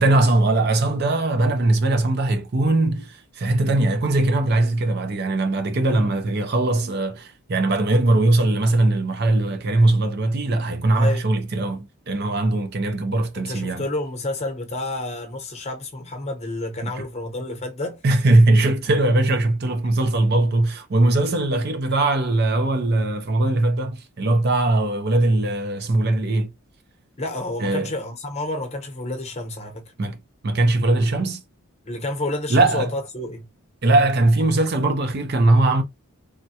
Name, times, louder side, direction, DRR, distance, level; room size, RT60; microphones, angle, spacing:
voice 1, 0.0-13.9 16.8-16.9 18.0-26.5 27.6-27.9 30.0-30.2 30.4-31.4 32.5-32.9 33.8-35.8, right 2 dB, 45° right, 0.5 m, -20 dB
voice 2, 5.8-6.1 10.9-11.2 13.4-18.0 27.2-29.8 31.8-33.5, left 2 dB, 30° left, 0.8 m, -30 dB
3.5 x 2.2 x 2.7 m
head